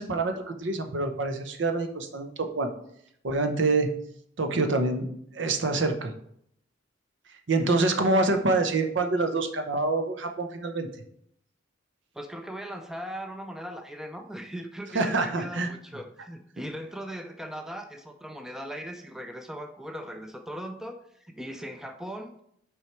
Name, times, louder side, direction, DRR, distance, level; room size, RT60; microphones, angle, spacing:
voice 1, 0.0-2.7 3.2-3.9 4.4-5.1 5.3-6.1 7.5-10.9 14.9-15.7, right 3 dB, 65° right, 6 dB, 0.8 m, -26 dB
voice 2, 12.1-22.4, equal, 5° right, 5 dB, 0.4 m, -39 dB
6.1 x 4.8 x 4.4 m, 0.71 s
head